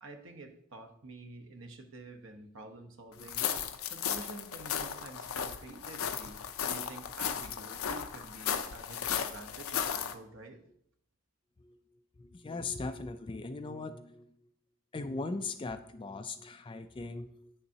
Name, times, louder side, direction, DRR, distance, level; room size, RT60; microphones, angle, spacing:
voice 1, 0.0-10.6, right 2 dB, 60° right, 6 dB, 0.9 m, -49 dB
sound 1, 3.2-10.1, left 8 dB, 70° left, 0.6 m, -35 dB
voice 2, 12.2-14.3 14.9-17.5, left 3 dB, 25° left, 9 dB, 0.3 m, -39 dB
8.6 x 6.8 x 2.8 m, 0.71 s
head